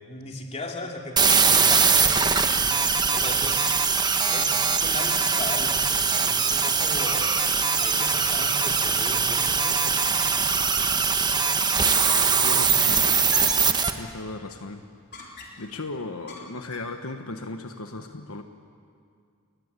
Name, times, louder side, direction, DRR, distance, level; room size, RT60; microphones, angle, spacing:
voice 1, 0.1-2.4 3.1-3.8 4.3-7.3 7.8-9.9, left 2 dB, 30° left, 1 dB, 3.0 m, -37 dB
sound 1, 1.2-13.9, right 5 dB, 20° right, 1.2 m, -22 dB
sound 2, 10.4-10.9 11.3-11.4 11.9-12.3 13.3-13.7 15.1-15.8 16.3-17.0, left 2 dB, 50° left, 4.1 m, -42 dB
voice 2, 12.4-13.1 13.7-14.8 15.6-18.4, left 2 dB, 75° left, 6 dB, 1.4 m, -36 dB
29.5 x 21.5 x 8.4 m, 2.2 s
head